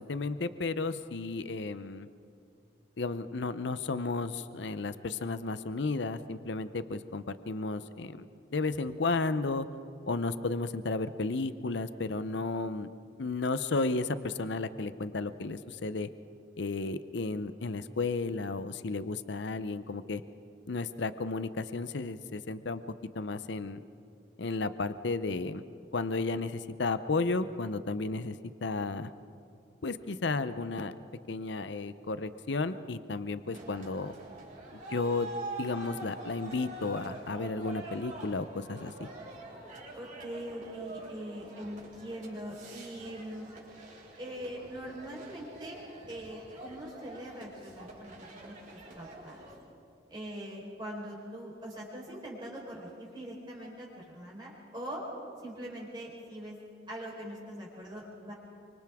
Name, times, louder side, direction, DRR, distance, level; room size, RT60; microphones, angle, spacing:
voice 1, 0.0-2.1 3.0-9.7 10.1-12.9 13.2-16.1 16.6-20.2 20.7-22.8 23.1-23.8 24.4-25.6 25.9-29.1 29.8-30.9 31.3-34.1 34.7-39.1, left 3 dB, 65° left, 12 dB, 0.7 m, -33 dB
sound 1, 33.5-49.6, right 2 dB, 40° right, 4.6 m, -46 dB
voice 2, 39.9-43.5 44.2-49.5 50.1-55.0 55.4-56.6 56.9-58.3, equal, 25° right, -4 dB, 4.3 m, -42 dB
29.0 x 25.0 x 3.6 m, 2.5 s
head